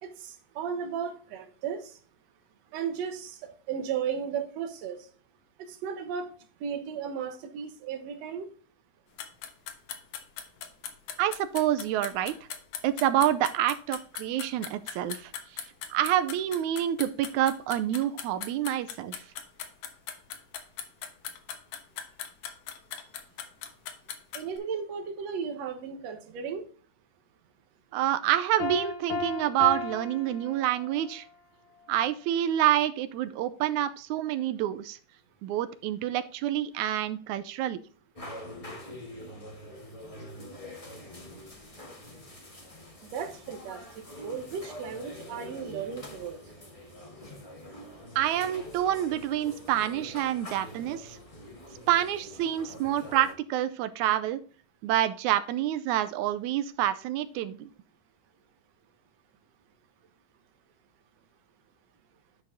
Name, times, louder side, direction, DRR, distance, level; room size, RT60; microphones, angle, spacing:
voice 1, 0.0-2.0 2.7-5.1 5.7-6.3 6.6-8.5 24.3-26.7 43.0-43.8 44.2-46.4, right 7 dB, 65° right, 6 dB, 2.3 m, -35 dB
sound 1, 9.2-24.6, left 9 dB, 85° left, 2.6 m, -39 dB
voice 2, 11.2-12.3 12.8-15.3 15.9-19.2 27.9-31.3 31.9-35.0 35.4-37.8 48.2-51.2 51.9-54.4 54.8-57.7, right 12 dB, 85° right, 13 dB, 2.0 m, -27 dB
Piano, 28.6-31.1, left 5 dB, 60° left, 1.5 m, -35 dB
sound 2, 38.2-53.3, left 1 dB, 20° left, 0.9 m, -45 dB
10.5 x 4.9 x 3.8 m, 0.41 s
omnidirectional pair, 3.4 m